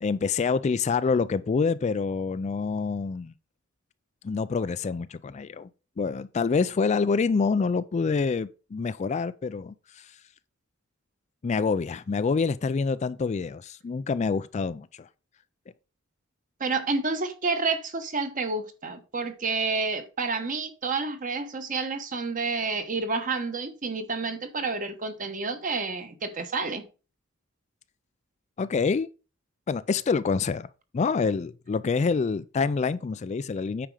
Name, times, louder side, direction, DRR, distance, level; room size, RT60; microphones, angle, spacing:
voice 1, 0.0-3.3 4.2-5.7 6.0-10.1 11.4-15.1 28.6-29.1 29.7-30.7 30.9-33.9, left 5 dB, 35° left, 0.3 m, -26 dB
voice 2, 16.6-26.8, right 4 dB, 40° right, 1.2 m, -29 dB
9.1 x 5.0 x 4.8 m
head